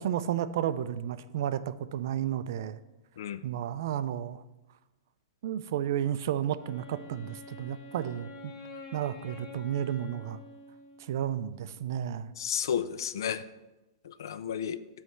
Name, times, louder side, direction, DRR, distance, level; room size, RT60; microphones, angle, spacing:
voice 1, 0.0-2.8 3.4-4.4 5.4-8.5 8.9-10.4 11.0-12.3, right 10 dB, 50° right, 14 dB, 0.3 m, -32 dB
Wind instrument woodwind instrument, 6.5-11.3, left 2 dB, 60° left, 1.6 m, -47 dB
voice 2, 12.4-13.4 14.0-14.8, left 8 dB, 75° left, 14 dB, 0.4 m, -32 dB
7.9 x 3.2 x 5.6 m, 1.1 s
supercardioid pair, 175°, 2 cm